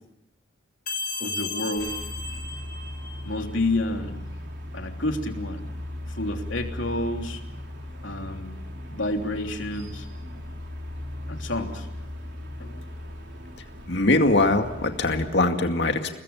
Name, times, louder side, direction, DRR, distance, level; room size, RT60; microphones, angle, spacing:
sound 1, 0.9-3.4, left 4 dB, 45° left, 2.4 m, -34 dB
voice 1, 1.2-2.0 3.2-4.3 4.7-5.7 6.1-7.4 8.0-8.5 8.9-10.1 11.3-11.9 12.6-12.8, left 2 dB, 80° left, 3 dB, 3.2 m, -29 dB
sound 2, 1.7-15.3, left 1 dB, 65° right, 4.2 m, -37 dB
voice 2, 13.9-16.2, left 2 dB, 60° left, 5 dB, 2.3 m, -22 dB
29.0 x 20.5 x 7.1 m, 0.86 s
head